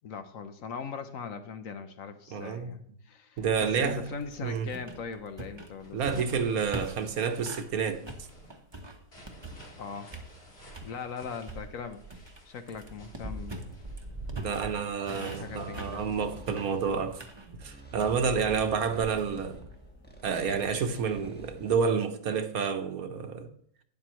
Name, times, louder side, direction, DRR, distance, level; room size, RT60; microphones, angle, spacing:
voice 1, 0.0-6.3 9.8-10.2 10.8-13.7 15.1-16.2, left 6 dB, 60° left, 1.1 m, -40 dB
voice 2, 2.3-2.8 3.4-4.1 4.4-4.7 5.9-8.0 14.3-17.2 17.5-19.6 20.2-23.5, right 6 dB, 70° right, 1.4 m, -29 dB
sound 1, 3.4-7.7 8.1-9.8 10.1-10.9 11.4-21.9, right 2 dB, 20° right, 0.9 m, -43 dB
sound 2, 5.8-17.0, right 1 dB, 40° left, 2.9 m, -52 dB
sound 3, 13.3-21.8, equal, 5° left, 1.1 m, -50 dB
12.0 x 9.7 x 3.1 m
omnidirectional pair, 1.7 m